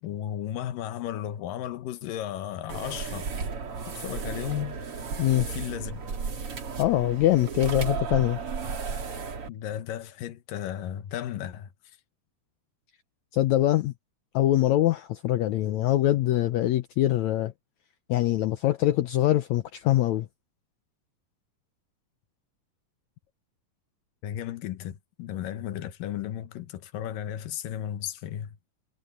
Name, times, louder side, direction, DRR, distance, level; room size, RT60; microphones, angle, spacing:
voice 1, 0.0-3.4 3.9-4.8 5.4-6.0 9.5-11.7 24.2-28.6, left 11 dB, 90° left, 2.8 m, -34 dB
sound 1, 2.7-9.5, right 5 dB, 45° right, 3.2 m, -34 dB
voice 2, 6.8-8.4 13.3-13.9 14.3-17.5 18.1-20.3, left 14 dB, 75° left, 1.8 m, -23 dB
omnidirectional pair, 3.8 m